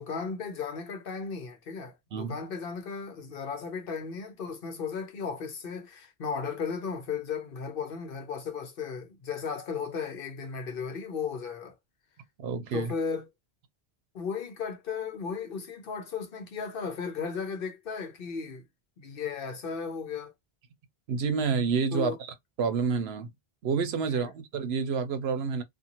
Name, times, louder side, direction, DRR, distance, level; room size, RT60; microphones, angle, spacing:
voice 1, 0.0-11.7 12.7-13.3 14.1-18.6 19.0-20.3 21.9-22.2 24.1-24.3, left 5 dB, 65° left, 0.9 m, -35 dB
voice 2, 12.4-12.9 21.1-23.3 23.6-25.6, right 5 dB, 80° right, 0.9 m, -29 dB
2.5 x 2.4 x 2.9 m
omnidirectional pair, 1.1 m